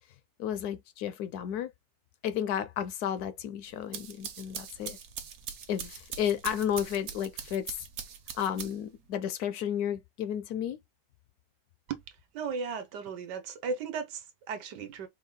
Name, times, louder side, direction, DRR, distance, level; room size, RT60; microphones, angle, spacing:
voice 1, 0.4-1.7 2.2-5.0 5.7-7.8 8.4-10.8, left 9 dB, 70° left, 1.0 m, -32 dB
sound 1, 3.7-9.0, right 8 dB, 60° right, 1.2 m, -42 dB
voice 2, 12.3-15.1, right 5 dB, 75° right, 1.5 m, -36 dB
4.5 x 2.3 x 3.7 m
omnidirectional pair, 1.8 m